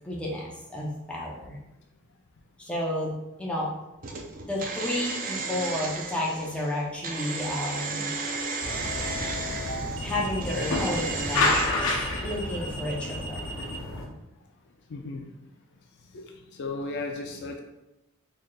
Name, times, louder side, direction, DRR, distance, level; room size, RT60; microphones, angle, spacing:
voice 1, 0.0-1.6 2.6-3.1 3.4-3.7 4.4-8.1 10.0-13.5, left 1 dB, 5° left, -4 dB, 0.7 m, -31 dB
sound 1, 4.0-11.7, right 4 dB, 40° right, 0.5 m, -34 dB
sound 2, 5.4-5.7 8.7-13.8, equal, 90° right, 0.6 m, -40 dB
sound 3, 8.6-14.1, left 2 dB, 70° left, 0.7 m, -30 dB
voice 2, 14.9-15.3 16.1-16.2 16.6-17.6, left 3 dB, 55° left, 3 dB, 0.4 m, -35 dB
4.0 x 3.2 x 2.3 m, 0.95 s
head